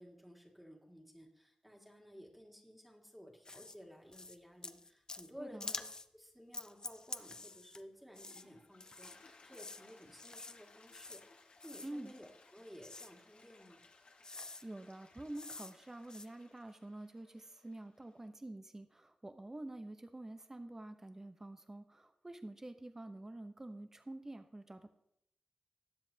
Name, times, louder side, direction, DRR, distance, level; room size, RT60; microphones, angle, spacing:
voice 1, 0.0-5.9 6.1-13.8, equal, 5° right, 0 dB, 2.0 m, -55 dB
sound 1, 3.5-3.8 4.1-4.4 4.6-5.3 5.6-6.1 6.5-7.8 8.1-8.4 8.8-9.2 9.5-9.8 10.2-10.6 10.9-11.2 11.6-11.9 12.8-13.1 13.8-13.9 14.2-14.6 15.3-15.7 16.0-16.3, left 3 dB, 30° left, 0.5 m, -47 dB
voice 2, 5.4-5.7 11.8-12.1 14.4-24.9, right 1 dB, 20° right, 8 dB, 0.7 m, -48 dB
Toilet flush, 7.9-18.3, left 3 dB, 60° left, 1.5 m, -63 dB
19.0 x 7.6 x 2.8 m, 0.75 s
wide cardioid pair, 90°, 2 cm